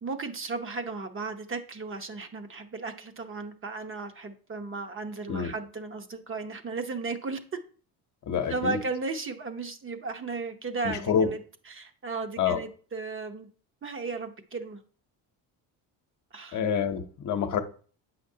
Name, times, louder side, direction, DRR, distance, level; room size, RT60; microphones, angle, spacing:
voice 1, 0.0-7.4 8.5-11.4 11.7-13.5 13.8-14.8 16.3-16.6, right 3 dB, 35° right, 0.9 m, -35 dB
voice 2, 8.3-8.8 10.8-11.3 12.4-12.6 16.5-17.6, left 7 dB, 50° left, 0.9 m, -27 dB
8.1 x 5.9 x 2.8 m
cardioid pair, 95°, 38 cm